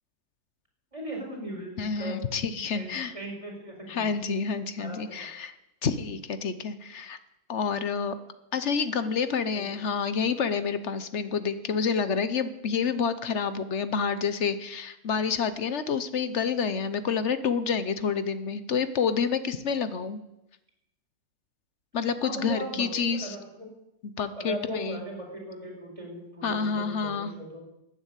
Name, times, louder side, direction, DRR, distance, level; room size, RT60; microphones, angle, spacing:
voice 1, 0.9-2.2 2.7-4.1 4.8-5.3 9.5-9.8 22.2-23.7 24.4-27.6, right 1 dB, 20° right, -1 dB, 4.8 m, -38 dB
voice 2, 1.8-3.1 3.9-5.5 5.8-7.2 7.5-8.2 8.5-20.2 21.9-23.4 24.2-25.0 26.4-27.3, left 6 dB, 50° left, 12 dB, 1.0 m, -28 dB
14.5 x 9.7 x 8.3 m, 0.90 s
omnidirectional pair, 1.8 m